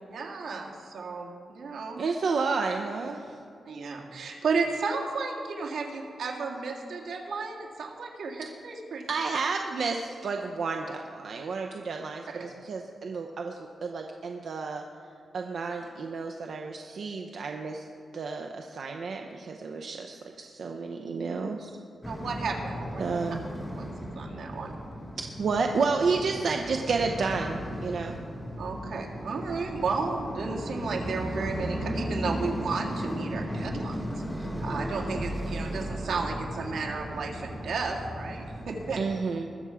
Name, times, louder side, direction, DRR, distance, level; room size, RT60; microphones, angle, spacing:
voice 1, 0.1-2.0 3.7-9.0 12.3-12.4 22.1-23.0 23.8-23.9 24.2-24.8 28.6-34.0 34.4-39.0, right 4 dB, 90° right, 0 dB, 1.9 m, -33 dB
voice 2, 2.0-3.4 9.1-14.8 15.3-17.9 18.1-21.7 23.0-23.4 25.2-28.2 39.0-39.5, right 4 dB, 65° right, 3 dB, 0.7 m, -31 dB
sound 1, 22.0-39.1, equal, 5° left, 1.7 m, -35 dB
21.0 x 7.0 x 4.9 m, 2.6 s
wide cardioid pair, 140°, 0 cm